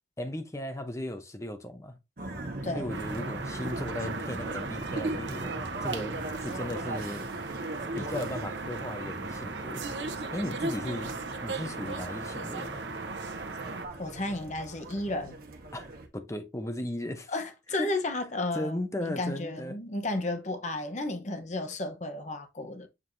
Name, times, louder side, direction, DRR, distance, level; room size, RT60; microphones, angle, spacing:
voice 1, 0.2-2.0 2.7-7.3 8.0-9.8 10.3-11.2 11.4-12.8 15.7-17.3 17.8-17.9 18.5-19.8, left 1 dB, 15° left, 0.8 m, -36 dB
sound 1, 2.2-16.1, right 2 dB, 55° right, 1.4 m, -40 dB
voice 2, 2.6-3.0 14.0-15.4 17.3-22.9, left 2 dB, 40° left, 0.9 m, -33 dB
sound 2, 2.9-13.9, right 3 dB, 85° right, 0.9 m, -36 dB
7.5 x 4.7 x 2.6 m
head